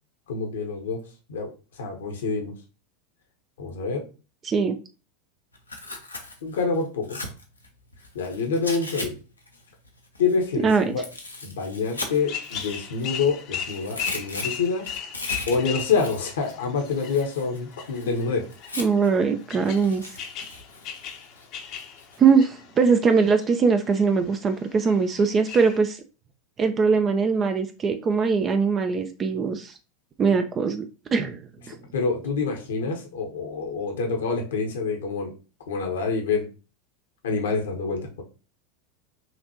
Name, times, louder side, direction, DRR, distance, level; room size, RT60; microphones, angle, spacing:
voice 1, 0.3-1.0 1.3-1.5 1.8-2.5 3.6-4.0 6.4-7.2 8.1-9.1 10.2-11.0 11.4-14.8 15.5-18.4 31.9-35.3 35.7-36.4 37.2-38.2, left 4 dB, 70° left, 2 dB, 1.0 m, -26 dB
voice 2, 4.4-4.8 10.6-10.8 18.8-20.0 22.2-26.0 26.6-29.7 30.2-30.9 31.1-31.4 31.7-31.8, right 5 dB, 30° right, 7 dB, 0.4 m, -21 dB
Tearing, 5.5-9.1 9.4-13.3 13.6-19.2 19.6-22.2, left 2 dB, 90° left, 0.7 m, -38 dB
sound 1, 11.9-25.8, left 8 dB, 45° left, 0.7 m, -38 dB
5.8 x 2.6 x 2.9 m, 0.33 s
figure-of-eight pair, 85°, 0 cm